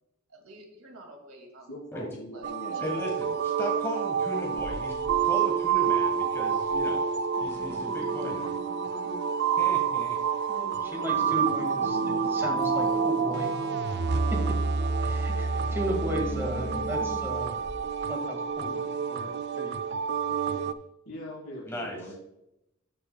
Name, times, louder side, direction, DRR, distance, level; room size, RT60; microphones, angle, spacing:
voice 1, 0.3-1.7 2.3-2.9 3.2-3.3, right 1 dB, 90° right, 2 dB, 2.1 m, -50 dB
voice 2, 1.7-2.9 11.8-12.7 21.0-22.1, equal, 70° left, -2 dB, 1.7 m, -41 dB
sound 1, 2.4-20.7, right 6 dB, 55° right, 0.4 m, -28 dB
voice 3, 2.8-7.0 7.4-8.5 9.6-10.2 21.7-22.0, equal, 10° left, -1 dB, 1.4 m, -37 dB
sound 2, 4.5-5.2 5.6-6.1 6.6-6.8 7.2-9.4 9.9-10.1 10.5-18.0 18.5-18.6, equal, 30° left, 2.0 m, -44 dB
voice 4, 10.8-11.8 12.3-13.5 15.0-17.6 18.1-19.8, equal, 10° right, 1 dB, 1.8 m, -35 dB
13.0 x 7.5 x 2.3 m, 0.85 s
head